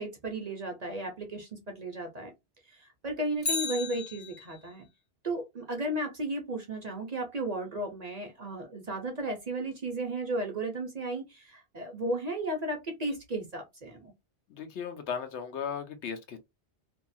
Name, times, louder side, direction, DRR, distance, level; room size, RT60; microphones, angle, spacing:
voice 1, 0.0-2.3 2.7-4.9 5.2-14.1, right 1 dB, 40° right, 0.7 m, -34 dB
Bicycle, 3.4-4.8 13.1-13.2, left 4 dB, 30° left, 0.4 m, -34 dB
voice 2, 14.5-16.4, left 7 dB, 75° left, 0.9 m, -36 dB
2.7 x 2.3 x 2.5 m
omnidirectional pair, 1.2 m